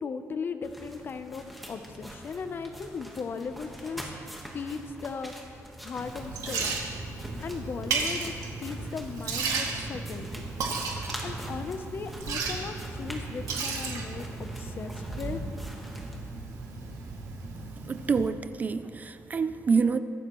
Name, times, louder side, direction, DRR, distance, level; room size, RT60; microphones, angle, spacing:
voice 1, 0.0-4.1 4.5-6.8 7.4-8.3 8.6-10.5 11.2-14.3 14.6-15.4, left 5 dB, 40° left, 9 dB, 0.7 m, -37 dB
sound 1, 0.6-16.2, equal, ahead, 1.3 m, -45 dB
Liquid, 5.9-18.3, right 4 dB, 85° right, 2.1 m, -34 dB
voice 2, 17.8-20.0, right 5 dB, 30° right, 12 dB, 0.3 m, -27 dB
23.0 x 12.0 x 3.1 m, 2.7 s
wide cardioid pair, 170°, 6 cm